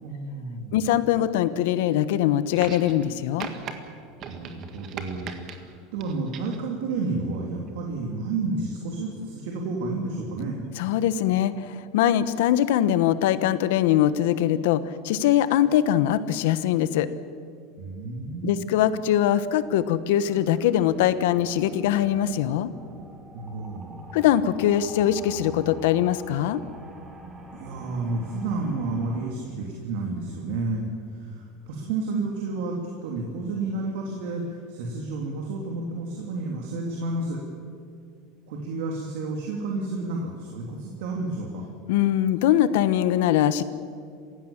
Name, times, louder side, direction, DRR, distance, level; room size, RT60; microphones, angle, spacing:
voice 1, 0.0-0.8 4.3-10.6 17.8-18.6 23.3-24.0 27.5-30.9 31.1-37.4 38.5-41.6, right 3 dB, 70° right, 0 dB, 3.2 m, -31 dB
voice 2, 0.7-3.5 10.8-17.1 18.4-22.7 24.1-26.6 41.9-43.6, left 11 dB, 75° left, 14 dB, 1.1 m, -22 dB
sound 1, 2.5-3.1 3.4-3.7 4.2-5.6 6.0-6.6 7.7-7.8, right 7 dB, 35° right, 1.7 m, -38 dB
sound 2, 18.7-29.3, right 2 dB, 15° right, 2.2 m, -45 dB
28.0 x 16.0 x 7.4 m, 2.3 s
supercardioid pair, 170°, 0 cm